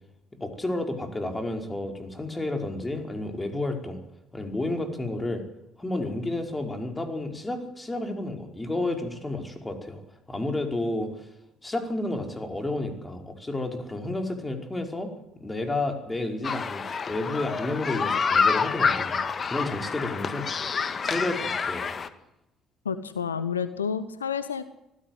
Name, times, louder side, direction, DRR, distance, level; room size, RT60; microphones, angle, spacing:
voice 1, 0.4-4.0 4.3-5.5 5.8-10.0 10.3-11.2 11.6-19.2 19.4-20.5 21.0-21.9, left 2 dB, 15° left, 4 dB, 5.1 m, -31 dB
sound 1, 16.4-22.1, left 5 dB, 35° left, 1.7 m, -27 dB
voice 2, 22.8-24.6, left 7 dB, 85° left, 14 dB, 0.9 m, -29 dB
25.5 x 16.5 x 8.0 m, 0.89 s
figure-of-eight pair, 50°, 0 cm